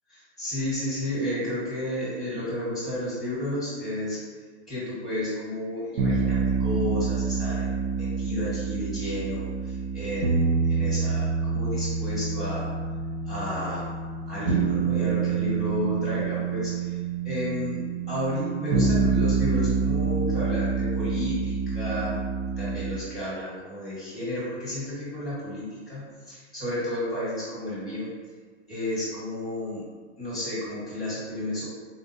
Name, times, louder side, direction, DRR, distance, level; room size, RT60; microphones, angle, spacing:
voice 1, 0.1-4.2 4.7-12.7 13.2-13.9 14.3-17.0 17.2-22.2 22.6-28.1 28.7-29.8 30.2-31.7, left 1 dB, ahead, -9 dB, 1.2 m, -32 dB
sound 1, 6.0-23.0, right 5 dB, 65° right, 0.6 m, -27 dB
3.8 x 2.1 x 2.7 m, 1.5 s
hypercardioid pair, 135°, 35 cm